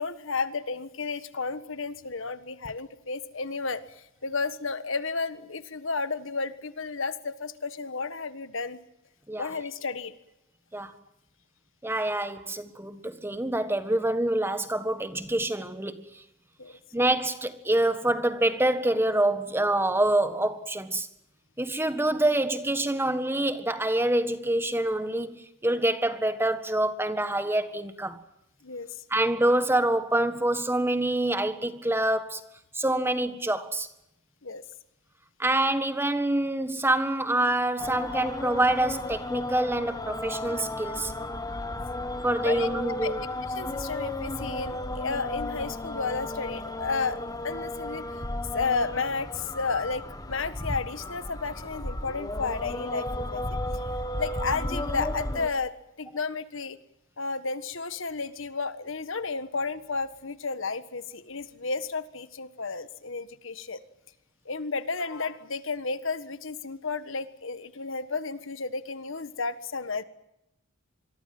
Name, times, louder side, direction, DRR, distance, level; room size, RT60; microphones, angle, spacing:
voice 1, 0.0-8.8 9.4-10.1 16.6-16.7 28.6-28.9 34.4-34.6 42.4-42.7 43.0-43.1 43.5-47.2 47.4-48.0 48.5-50.0 50.3-53.6 54.2-56.8 57.2-63.8 64.4-70.0, left 4 dB, 65° left, 1.5 m, -32 dB
voice 2, 11.8-16.1 16.9-21.1 21.6-28.2 29.1-32.4 32.7-33.9 35.4-41.1 42.2-43.2, right 1 dB, 10° right, 1.6 m, -26 dB
sound 1, 37.8-55.5, left 1 dB, 20° left, 1.6 m, -34 dB
26.5 x 22.5 x 7.8 m
head